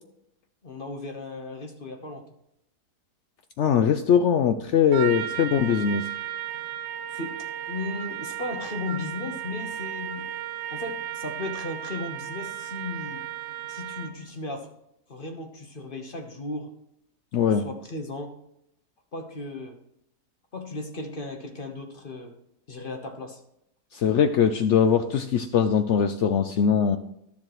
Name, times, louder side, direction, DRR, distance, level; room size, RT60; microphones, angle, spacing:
voice 1, 0.6-2.2 5.1-5.3 5.7-6.1 7.1-7.4 7.7-10.3 10.7-13.2 13.7-14.7 15.1-16.7 17.4-18.3 19.1-19.8 20.5-22.3 22.7-23.4, left 2 dB, 35° left, 4 dB, 1.1 m, -36 dB
voice 2, 3.6-6.0 17.3-17.7 23.9-27.0, left 7 dB, 80° left, 8 dB, 0.6 m, -21 dB
Trumpet, 4.9-14.3, right 11 dB, 65° right, 0.6 m, -35 dB
12.0 x 7.3 x 3.1 m, 0.79 s
omnidirectional pair, 1.8 m